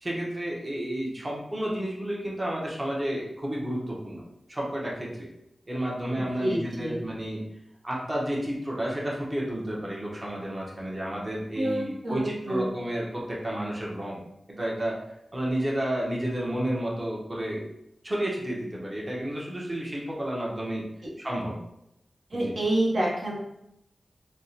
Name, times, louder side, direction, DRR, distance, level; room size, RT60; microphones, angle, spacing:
voice 1, 0.0-4.2 4.5-5.3 5.7-7.4 7.8-14.2 14.5-15.0 15.3-17.7 18.0-20.8 21.2-21.6 22.3-22.5, right 1 dB, 30° right, -4 dB, 0.9 m, -31 dB
voice 2, 6.4-7.0 11.6-12.7 22.3-23.4, right 1 dB, 65° right, -4 dB, 1.0 m, -27 dB
3.3 x 2.1 x 2.7 m, 0.81 s
cardioid pair, 40°, 0 cm